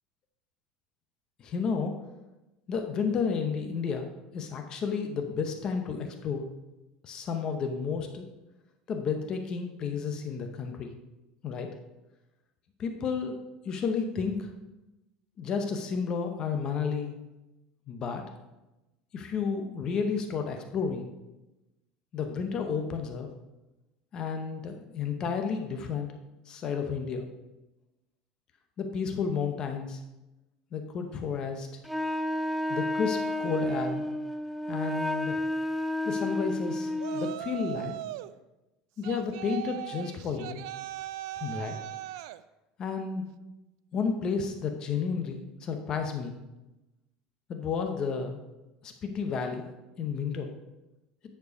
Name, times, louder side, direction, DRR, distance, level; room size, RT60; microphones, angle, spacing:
voice 1, 1.4-1.9 2.7-6.5 7.0-8.3 8.9-10.9 11.4-11.7 12.8-13.4 13.6-14.5 15.4-17.1 17.9-18.2 19.1-21.1 22.1-23.3 24.1-26.1 26.5-27.3 28.8-30.0 30.7-31.7 32.7-34.1 34.7-35.4 36.0-37.9 39.0-40.6 41.4-41.8 42.8-43.2 43.9-46.4 47.5-48.4 48.8-49.7 50.0-50.5, left 5 dB, 30° left, 5 dB, 0.8 m, -31 dB
Wind instrument woodwind instrument, 31.8-37.4, left 1 dB, ahead, 0.3 m, -31 dB
Yell, 37.0-38.3 39.0-42.4, right 14 dB, 85° right, 0.4 m, -39 dB
9.6 x 4.5 x 5.1 m, 1.0 s
cardioid pair, 160°, 2 cm